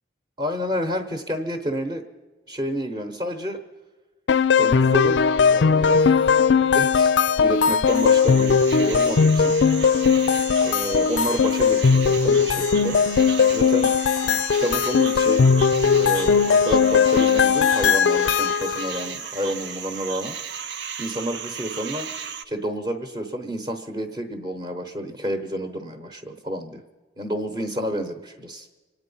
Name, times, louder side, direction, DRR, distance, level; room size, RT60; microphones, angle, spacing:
voice 1, 0.4-2.0 2.5-3.6 4.6-5.2 5.5-6.0 6.7-7.1 7.4-9.5 10.6-13.0 13.5-13.9 14.2-15.7 15.9-20.5 21.0-22.1 22.4-26.8 27.2-28.7, equal, 25° right, 5 dB, 1.0 m, -29 dB
sound 1, 4.3-19.0, left 6 dB, 70° left, 0.4 m, -19 dB
sound 2, 7.9-22.4, right 7 dB, 65° right, 0.6 m, -35 dB
25.5 x 9.2 x 5.6 m, 1.3 s
head